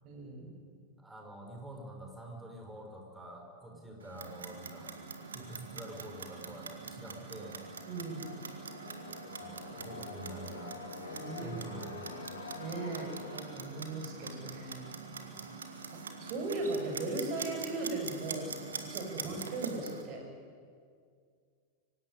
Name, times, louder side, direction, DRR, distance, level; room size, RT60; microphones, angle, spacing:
voice 1, 0.0-0.6 7.9-8.3 11.0-11.5 12.6-14.8 15.9-20.2, right 2 dB, 40° right, 3 dB, 6.2 m, -38 dB
voice 2, 1.0-4.9 5.3-7.6 9.4-10.8 11.4-12.2 15.1-15.7 19.2-19.4, right 1 dB, 5° right, 1 dB, 5.4 m, -47 dB
Clock, 4.0-20.0, right 5 dB, 70° right, 2.3 m, -44 dB
sound 1, 7.3-15.1, left 4 dB, 70° left, 2.3 m, -48 dB
24.5 x 16.0 x 9.9 m, 2.2 s
figure-of-eight pair, 90°, 0 cm